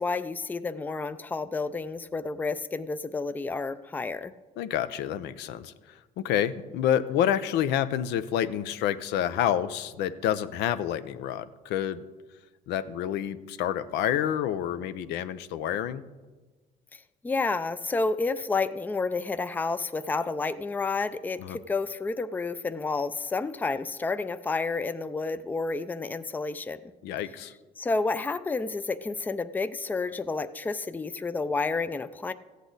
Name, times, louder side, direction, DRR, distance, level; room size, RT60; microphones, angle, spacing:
voice 1, 0.0-4.3 16.9-26.8 27.8-32.3, left 3 dB, 10° left, 13 dB, 0.4 m, -30 dB
voice 2, 4.6-12.0 12.7-16.0 21.4-21.6 27.0-27.5, left 10 dB, 85° left, 12 dB, 0.6 m, -28 dB
15.0 x 8.2 x 4.0 m, 1.3 s
cardioid pair, 110°, 17 cm